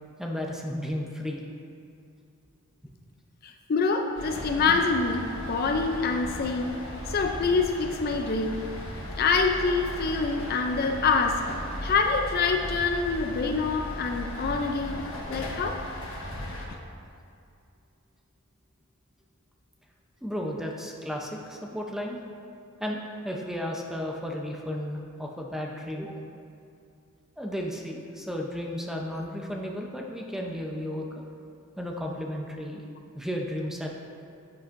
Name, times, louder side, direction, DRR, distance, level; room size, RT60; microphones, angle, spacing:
voice 1, 0.2-1.4 20.2-22.2 22.8-26.2 27.4-31.1 31.8-32.8 33.1-33.9, equal, ahead, 0 dB, 0.6 m, -33 dB
voice 2, 3.4-6.7 7.1-8.6 9.2-11.4 11.8-15.0 15.3-15.8, left 4 dB, 45° left, 4 dB, 0.4 m, -26 dB
sound 1, 4.2-16.7, left 1 dB, 65° left, 1.2 m, -37 dB
9.7 x 8.5 x 2.6 m, 2.5 s
head